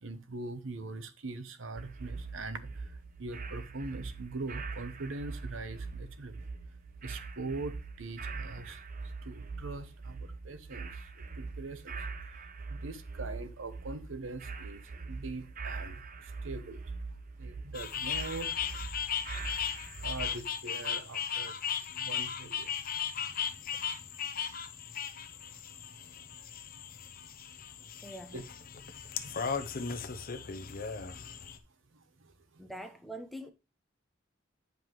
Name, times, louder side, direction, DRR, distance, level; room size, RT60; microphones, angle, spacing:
voice 1, 0.0-6.5 7.0-8.8 9.2-11.1 11.4-12.0 12.7-16.8 17.4-18.6 20.0-21.6 21.9-22.7 23.8-23.9 25.2-25.8 27.2-27.3 27.8-27.9 28.3-28.4 29.2-29.6 30.4-31.5 31.9-32.3, right 3 dB, 85° right, 0.8 m, -43 dB
sound 1, 1.8-20.4, right 4 dB, 45° right, 0.7 m, -42 dB
sound 2, 17.7-31.6, left 7 dB, 50° left, 0.7 m, -37 dB
voice 2, 28.0-28.4 32.6-33.5, right 1 dB, ahead, 0.8 m, -44 dB
9.1 x 5.3 x 3.1 m
head